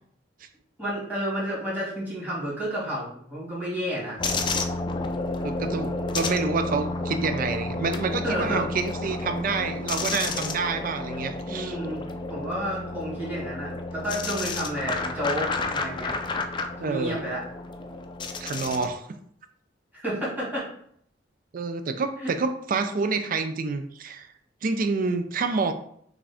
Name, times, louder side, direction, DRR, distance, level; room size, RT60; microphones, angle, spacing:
voice 1, 0.8-4.2 8.2-8.6 11.4-12.0 12.3-16.1 16.8-17.4 19.9-20.7 22.2-22.3, equal, 10° right, -7 dB, 1.9 m, -31 dB
sound 1, 4.2-18.9, left 3 dB, 25° left, 0.4 m, -31 dB
voice 2, 5.4-11.8 16.8-17.2 18.4-19.1 21.5-24.3 24.6-25.7, right 4 dB, 50° right, 9 dB, 0.5 m, -28 dB
5.9 x 2.6 x 3.4 m, 0.66 s
head